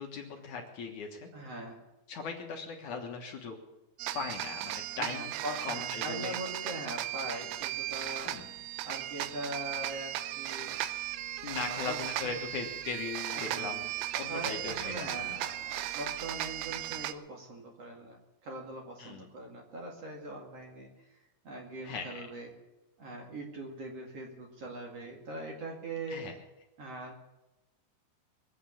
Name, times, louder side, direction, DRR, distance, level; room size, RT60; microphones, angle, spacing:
voice 1, 0.0-1.3 2.1-3.6 4.1-5.3 5.6-6.3 8.2-8.5 11.4-15.4 19.0-19.3 21.8-22.3 26.1-26.4, left 4 dB, 60° left, 1 dB, 2.6 m, -39 dB
voice 2, 1.3-1.9 4.9-8.5 8.8-10.8 11.5-12.4 13.3-13.9 14.3-21.2 21.4-22.5 23.0-26.3 26.8-27.2, right 1 dB, 45° right, 0 dB, 2.8 m, -42 dB
sound 1, 4.0-17.1, right 13 dB, 80° right, 2.5 m, -36 dB
22.5 x 8.6 x 7.1 m, 1.0 s
omnidirectional pair, 4.4 m